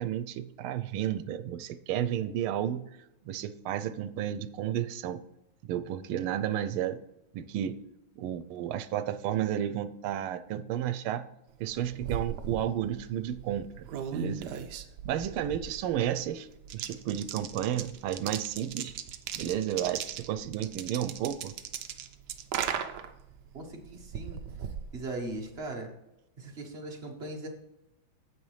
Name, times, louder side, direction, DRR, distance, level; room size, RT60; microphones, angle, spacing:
voice 1, 0.0-2.8 3.3-5.2 5.6-7.0 7.3-7.8 8.2-11.2 11.6-14.5 15.0-16.5 16.7-18.9 19.4-21.5, right 11 dB, 85° right, 12 dB, 1.5 m, -32 dB
sound 1, 11.6-25.6, right 8 dB, 70° right, 1.1 m, -39 dB
voice 2, 23.5-24.4 24.9-25.9 26.4-27.5, right 2 dB, 35° right, 1 dB, 1.3 m, -39 dB
9.4 x 7.9 x 3.2 m, 0.91 s
omnidirectional pair, 2.3 m